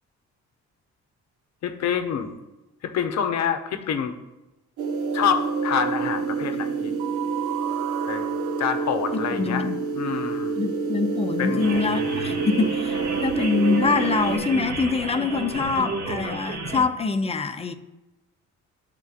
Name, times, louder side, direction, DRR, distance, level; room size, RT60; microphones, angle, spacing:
voice 1, 1.6-2.3 2.8-4.1 5.1-6.9 8.1-9.7 9.9-10.6 11.4-11.8, left 7 dB, 60° left, 6 dB, 0.7 m, -27 dB
sound 1, 4.8-14.4, right 5 dB, 80° right, 0.7 m, -27 dB
voice 2, 9.3-9.8 10.6-17.7, left 4 dB, 20° left, 7 dB, 0.5 m, -24 dB
sound 2, 11.6-16.8, right 3 dB, 55° right, 1.4 m, -32 dB
11.0 x 3.7 x 2.4 m, 1.0 s
cardioid pair, 90°, 30 cm